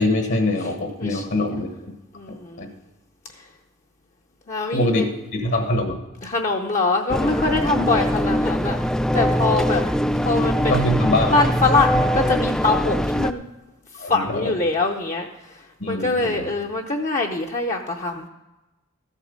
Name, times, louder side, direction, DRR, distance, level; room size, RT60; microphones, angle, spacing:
voice 1, 0.0-1.7 2.6-2.7 4.7-6.0 10.7-11.4 14.0-14.6 15.8-16.5, left 1 dB, 55° left, 4 dB, 1.3 m, -23 dB
voice 2, 1.0-1.5 2.1-2.7 4.5-5.2 6.2-8.8 9.1-9.8 10.2-10.8 11.3-13.4 14.0-15.3 15.9-18.3, left 3 dB, 35° left, 1 dB, 0.7 m, -23 dB
sound 1, 7.1-13.3, equal, 5° left, 0.3 m, -22 dB
14.0 x 8.3 x 5.2 m, 1.0 s
head